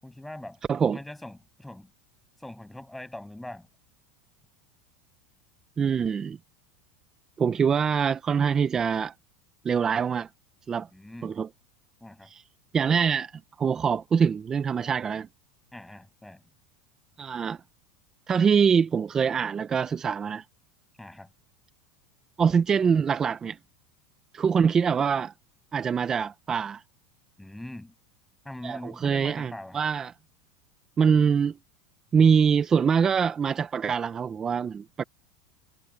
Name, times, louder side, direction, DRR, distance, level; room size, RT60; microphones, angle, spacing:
voice 1, 0.0-0.6 0.9-1.9 2.4-3.7 10.9-11.4 12.0-12.3 15.7-16.4 21.0-21.3 27.4-27.9 28.4-29.8, left 1 dB, 5° left, 7.8 m, -42 dB
voice 2, 5.8-6.4 7.4-9.1 9.6-10.3 10.7-10.9 11.2-11.5 12.3-12.4 12.7-13.3 13.6-15.3 17.2-17.6 18.3-20.4 22.4-23.6 24.3-25.3 25.7-26.8 28.6-30.1 31.0-31.6 32.1-35.0, right 6 dB, 20° right, 0.6 m, -24 dB
supercardioid pair, 140°, 3 cm